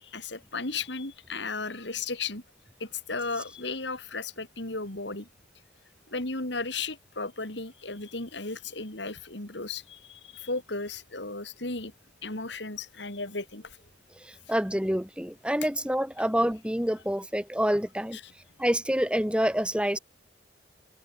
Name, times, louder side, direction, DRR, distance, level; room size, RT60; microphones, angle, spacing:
voice 1, 0.0-2.4 2.8-5.3 6.1-11.9 12.2-13.8 18.1-18.3, left 3 dB, 65° left, 3.8 m, -35 dB
voice 2, 14.5-18.2 18.6-20.0, equal, 5° right, 3.1 m, -27 dB
head